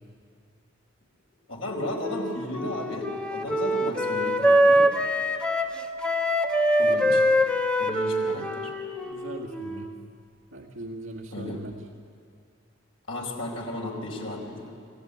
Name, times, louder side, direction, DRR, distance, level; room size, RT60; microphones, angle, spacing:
voice 1, 1.5-4.9 6.7-7.2 7.8-8.7 11.3-11.6 13.1-14.7, left 1 dB, 90° left, 0 dB, 4.5 m, -34 dB
Wind instrument woodwind instrument, 2.0-10.0, equal, 5° left, 1.3 m, -24 dB
voice 2, 9.0-9.9 10.5-11.9, right 1 dB, 75° right, -1 dB, 1.9 m, -39 dB
26.5 x 15.5 x 9.3 m, 2.2 s
head